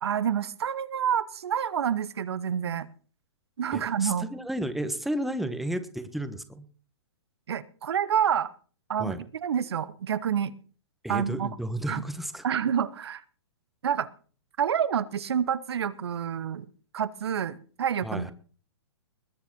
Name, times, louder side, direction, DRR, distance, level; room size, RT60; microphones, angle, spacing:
voice 1, 0.0-2.9 3.6-4.3 7.5-8.5 8.9-9.2 9.4-10.5 11.1-11.5 11.9-12.0 12.4-13.2 13.8-14.1 14.6-16.7 16.9-18.3, right 8 dB, 70° right, 15 dB, 1.1 m, -28 dB
voice 2, 3.7-6.6 9.0-9.2 11.0-12.4 18.0-18.3, right 1 dB, ahead, 10 dB, 1.3 m, -32 dB
20.5 x 6.9 x 6.2 m, 0.41 s
hypercardioid pair, 125°, 14 cm